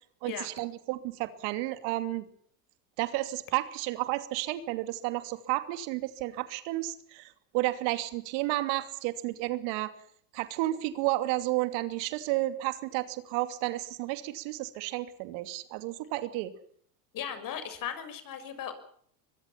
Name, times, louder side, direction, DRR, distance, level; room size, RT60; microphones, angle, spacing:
voice 1, 0.2-2.2 3.0-9.9 10.3-16.5, right 17 dB, 60° right, 10 dB, 2.8 m, -32 dB
voice 2, 17.1-18.7, left 9 dB, 45° left, 10 dB, 6.5 m, -37 dB
24.5 x 22.0 x 6.0 m, 0.64 s
hypercardioid pair, 105°, 48 cm